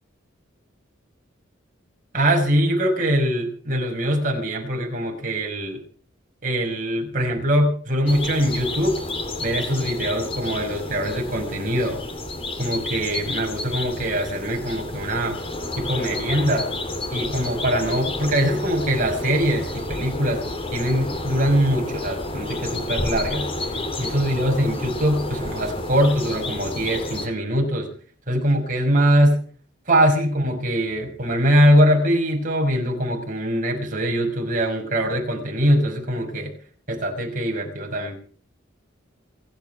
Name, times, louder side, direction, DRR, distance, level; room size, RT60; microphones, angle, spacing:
voice 1, 2.1-5.8 6.4-9.0 9.4-12.0 12.6-15.4 15.8-16.7 17.1-20.4 20.7-23.5 24.0-27.9 28.3-29.4 29.9-36.5 36.9-38.2, equal, 40° right, 2 dB, 5.7 m, -22 dB
sound 1, 8.1-27.3, left 2 dB, 30° left, 3.7 m, -30 dB
28.0 x 9.9 x 4.7 m, 0.43 s
head